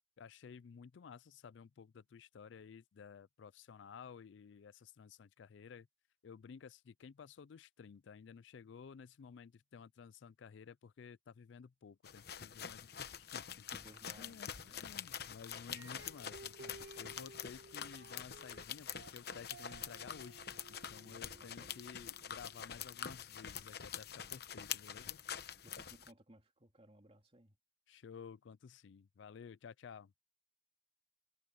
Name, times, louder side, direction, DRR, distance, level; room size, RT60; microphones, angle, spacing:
voice 1, 0.2-5.9 6.2-13.6 14.2-25.7 27.9-30.1, left 6 dB, 70° left, 0.4 m, -54 dB
sound 1, 12.0-26.1, left 8 dB, 55° left, 1.0 m, -46 dB
voice 2, 13.7-15.4 15.7-16.1 21.0-21.7 25.6-27.6, right 1 dB, 30° right, 2.7 m, -62 dB
sound 2, 15.7-22.8, right 3 dB, 70° right, 1.4 m, -57 dB
head